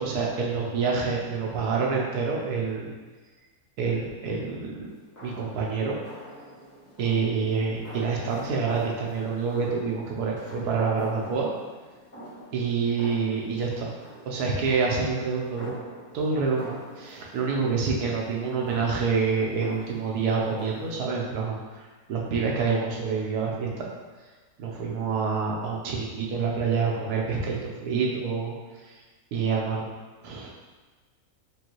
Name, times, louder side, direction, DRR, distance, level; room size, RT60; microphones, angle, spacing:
voice 1, 0.0-2.9 3.8-4.9 5.2-6.0 7.0-11.5 12.5-13.9 14.3-15.7 16.1-23.7 24.6-28.5 29.3-29.9 30.2-30.5, right 5 dB, 80° right, -2 dB, 1.3 m, -27 dB
sound 1, 4.8-21.0, equal, 15° left, 0.7 m, -47 dB
5.0 x 2.6 x 3.0 m, 1.3 s
omnidirectional pair, 1.6 m